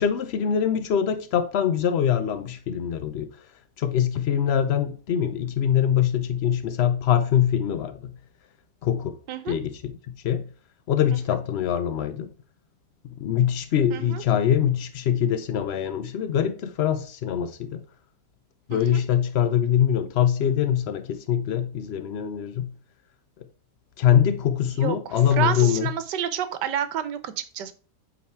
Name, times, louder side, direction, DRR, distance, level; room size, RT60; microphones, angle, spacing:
voice 1, 0.0-3.3 3.8-8.1 8.8-9.2 9.5-9.9 10.2-10.5 10.9-12.3 13.2-17.8 18.7-22.7 24.0-25.9, left 9 dB, 90° left, 0.5 m, -23 dB
voice 2, 13.9-14.2 18.7-19.0 24.8-27.7, right 9 dB, 90° right, 1.4 m, -29 dB
8.4 x 4.0 x 4.4 m
omnidirectional pair, 1.8 m